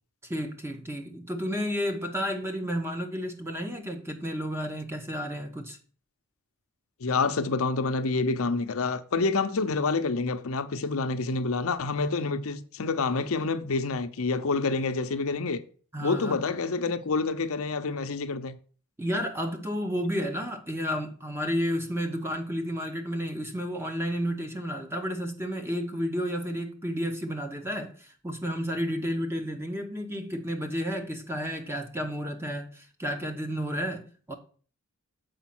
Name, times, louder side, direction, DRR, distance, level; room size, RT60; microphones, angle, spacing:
voice 1, 0.2-5.8 15.9-16.4 19.0-34.3, equal, 10° right, 1.0 m, -31 dB
voice 2, 7.0-15.6 16.0-18.6, left 3 dB, 70° left, 0.6 m, -28 dB
7.0 x 5.1 x 6.0 m
head